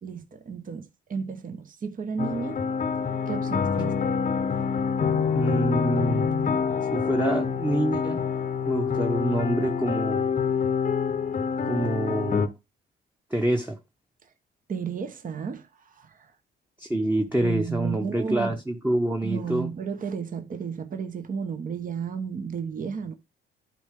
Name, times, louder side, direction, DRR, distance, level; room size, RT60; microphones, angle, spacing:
voice 1, 0.0-2.6 3.3-4.2 14.7-16.3 17.4-18.6 19.2-23.1, right 6 dB, 45° right, 1.1 m, -33 dB
sound 1, 2.2-12.5, left 6 dB, 40° left, 0.8 m, -26 dB
voice 2, 5.3-6.3 6.9-8.2 8.7-10.3 11.6-12.5 13.3-13.8 16.8-19.7, right 1 dB, 10° right, 1.0 m, -26 dB
11.5 x 4.5 x 3.7 m
cardioid pair, 90°, 20 cm